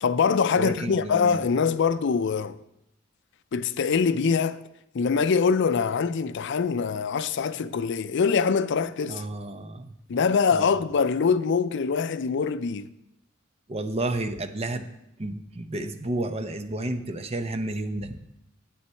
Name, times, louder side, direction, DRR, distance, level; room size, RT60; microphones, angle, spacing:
voice 1, 0.0-2.6 3.5-4.6 4.9-9.2 10.1-12.9, left 5 dB, 65° left, 0.4 m, -24 dB
voice 2, 0.6-1.4 9.1-10.0 10.5-10.7 13.7-14.9 15.2-18.2, right 2 dB, 30° right, 0.7 m, -31 dB
9.8 x 8.6 x 4.4 m
head